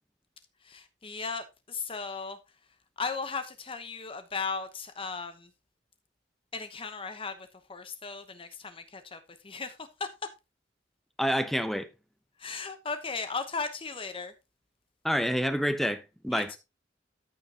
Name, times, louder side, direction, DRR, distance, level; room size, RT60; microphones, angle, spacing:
voice 1, 0.6-2.4 3.0-5.5 6.5-10.1 12.4-14.3 16.3-16.6, left 4 dB, 30° left, 0.9 m, -36 dB
voice 2, 11.2-11.9 15.0-16.5, equal, ahead, 0.8 m, -28 dB
13.0 x 5.8 x 2.8 m
head